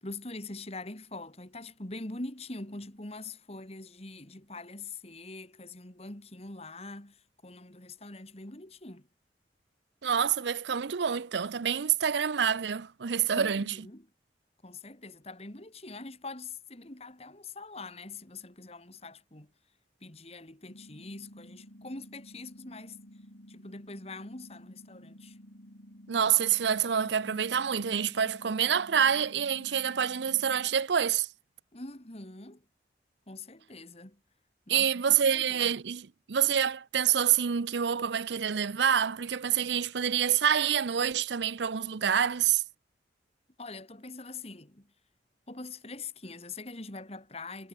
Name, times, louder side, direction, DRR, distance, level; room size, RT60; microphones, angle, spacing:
voice 1, 0.0-9.1 13.3-14.1 14.6-19.5 20.0-23.0 23.5-25.4 31.7-32.6 33.3-34.2 34.7-35.7 43.6-44.9 45.5-47.7, left 3 dB, 35° left, 2.5 m, -44 dB
voice 2, 10.0-13.8 26.1-31.3 34.7-42.6, right 8 dB, 80° right, 0.6 m, -27 dB
sound 1, 20.7-30.7, equal, 75° left, 7.9 m, -52 dB
head